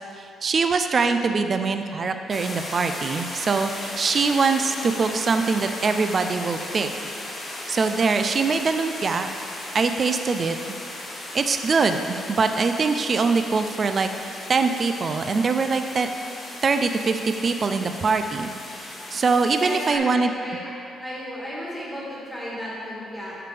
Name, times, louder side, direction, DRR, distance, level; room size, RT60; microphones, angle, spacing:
voice 1, 0.4-6.9 7.7-9.3 9.7-10.6 11.3-14.1 14.5-16.1 16.6-20.3, right 4 dB, 30° right, 7 dB, 0.4 m, -23 dB
sound 1, 2.3-20.0, left 1 dB, 30° left, 1.4 m, -36 dB
voice 2, 19.6-20.7 21.0-23.4, equal, 5° left, -7 dB, 1.7 m, -34 dB
9.6 x 6.9 x 3.4 m, 2.9 s
cardioid pair, 155°, 0 cm